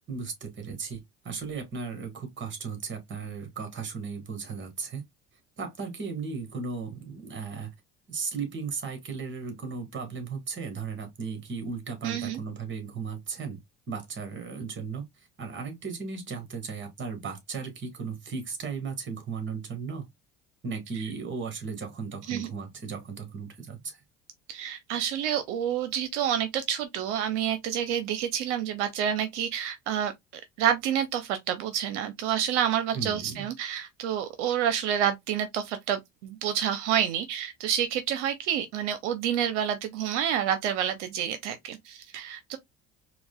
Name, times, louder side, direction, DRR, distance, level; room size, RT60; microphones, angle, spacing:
voice 1, 0.1-5.0 5.6-7.7 8.1-13.6 13.9-20.1 20.6-24.0 32.9-33.5, right 5 dB, 35° right, 1.6 m, -36 dB
voice 2, 12.0-12.4 22.3-22.5 24.5-42.6, right 9 dB, 80° right, 0.6 m, -28 dB
4.7 x 2.2 x 2.3 m
hypercardioid pair, 70°, 34 cm